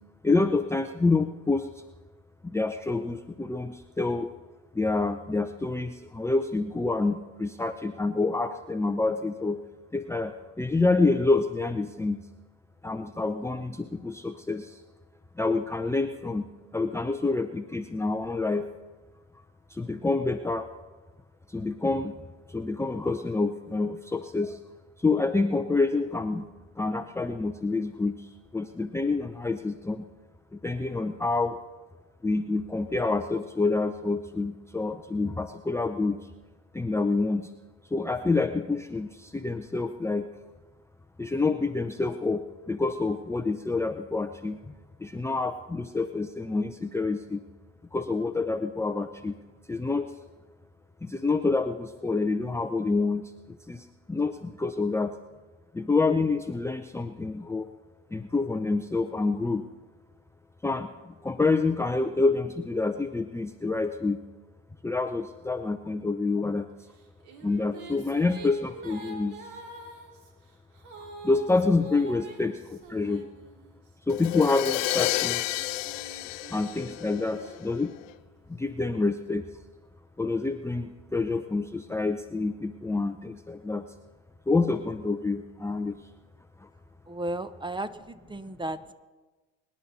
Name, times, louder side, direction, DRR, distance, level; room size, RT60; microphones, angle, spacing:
voice 1, 0.2-1.7 2.4-4.3 4.7-9.6 9.9-12.2 12.8-14.8 15.4-16.4 16.7-18.7 19.7-20.7 21.5-22.1 22.5-24.6 25.0-26.5 26.8-30.1 30.5-31.6 32.2-36.2 36.7-37.5 37.9-40.3 41.2-44.7 45.0-47.4 47.9-49.4 49.7-50.1 51.0-55.1 55.7-57.7 58.1-59.6 60.6-64.2 64.8-66.7 67.4-69.6 71.2-73.2 74.1-75.8 76.5-77.9 78.5-79.5 80.2-83.8 84.5-85.9 86.6-86.7, left 3 dB, 5° left, 7 dB, 0.7 m, -27 dB
Female singing, 66.9-73.9 74.5-78.3, right 3 dB, 70° right, 2.8 m, -46 dB
Crash cymbal, 74.1-77.9, left 17 dB, 80° left, 0.6 m, -31 dB
voice 2, 87.1-88.9, right 1 dB, 15° right, 13 dB, 1.0 m, -34 dB
24.5 x 10.5 x 4.2 m, 1.2 s
hypercardioid pair, 75°, 37 cm